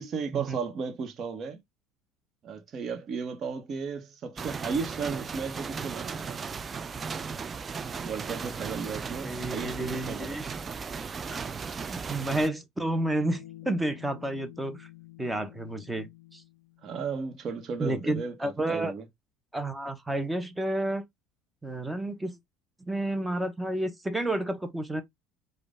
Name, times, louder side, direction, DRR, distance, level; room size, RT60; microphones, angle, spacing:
voice 1, 0.0-1.6 2.4-6.4 8.0-10.4 16.8-19.0, right 5 dB, 45° right, 1.3 m, -35 dB
sound 1, 4.4-12.5, right 5 dB, 30° right, 0.4 m, -36 dB
voice 2, 9.2-10.5 11.3-11.4 11.9-14.9 15.2-16.4 17.8-18.9 19.5-21.0 21.6-22.4 22.8-25.0, right 1 dB, 10° right, 1.0 m, -31 dB
sound 2, 13.2-17.0, left 16 dB, 85° left, 0.4 m, -48 dB
5.0 x 2.5 x 3.6 m
hypercardioid pair, 70°, 0 cm